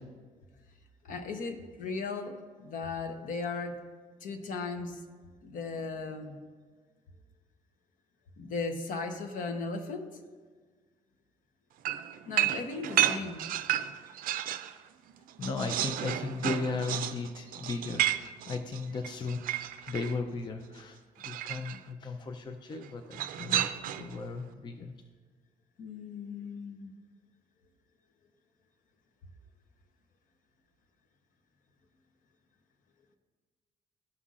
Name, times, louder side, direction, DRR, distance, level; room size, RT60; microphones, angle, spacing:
voice 1, 1.0-3.7 4.2-5.0 5.4-6.4 8.4-10.1 12.3-13.4 25.8-26.9, left 4 dB, 65° left, 6 dB, 1.0 m, -37 dB
sound 1, 11.8-14.7 15.1-20.2 21.2-21.8 23.1-24.2, right 12 dB, 70° right, 0.4 m, -32 dB
voice 2, 15.4-21.0 21.2-25.0, left 4 dB, 30° left, 6 dB, 0.5 m, -36 dB
15.0 x 5.5 x 2.5 m, 1.5 s
cardioid pair, 135°, 15 cm